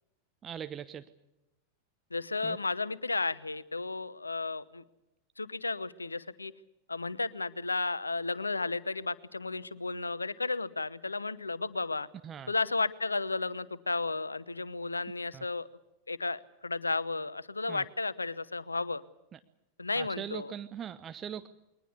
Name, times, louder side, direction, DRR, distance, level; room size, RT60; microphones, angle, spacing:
voice 1, 0.4-1.1 2.4-2.6 12.2-12.5 15.3-15.4 17.7-17.8 19.3-19.4 19.9-21.5, right 9 dB, 25° right, 12 dB, 0.9 m, -41 dB
voice 2, 2.1-4.8 5.4-6.5 6.9-12.1 12.5-15.7 16.1-19.0 19.8-20.5, left 3 dB, 80° left, 19 dB, 0.9 m, -33 dB
22.0 x 19.5 x 8.3 m, 0.91 s
figure-of-eight pair, 90°, 0 cm